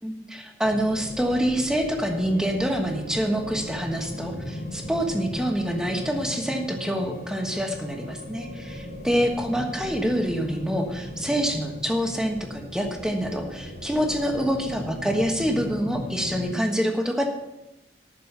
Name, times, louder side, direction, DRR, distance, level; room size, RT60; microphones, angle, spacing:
voice 1, 0.0-17.3, equal, 5° right, 3 dB, 1.3 m, -26 dB
sound 1, 0.6-16.6, left 1 dB, 60° left, 3.1 m, -37 dB
11.5 x 6.7 x 6.7 m, 0.95 s
head